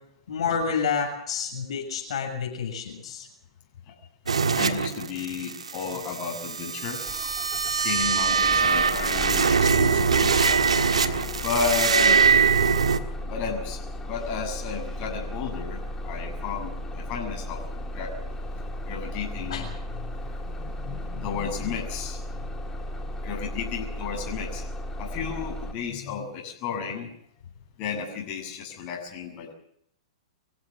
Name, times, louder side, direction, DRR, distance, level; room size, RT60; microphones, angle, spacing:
voice 1, 0.3-3.3 19.5-19.7, left 6 dB, 70° left, 2 dB, 7.2 m, -29 dB
sound 1, 4.3-13.0, right 5 dB, 85° right, 1.7 m, -22 dB
voice 2, 4.5-7.0 7.7-10.5 11.4-12.3 13.2-18.3 18.9-19.7 20.1-22.2 23.2-24.6 25.0-27.1 27.8-29.5, left 6 dB, 40° left, 1 dB, 7.2 m, -33 dB
Bus / Engine starting, 7.1-25.7, left 1 dB, 15° left, 3.4 m, -35 dB
25.5 x 15.5 x 7.6 m, 0.72 s
hypercardioid pair, 115°, 3 cm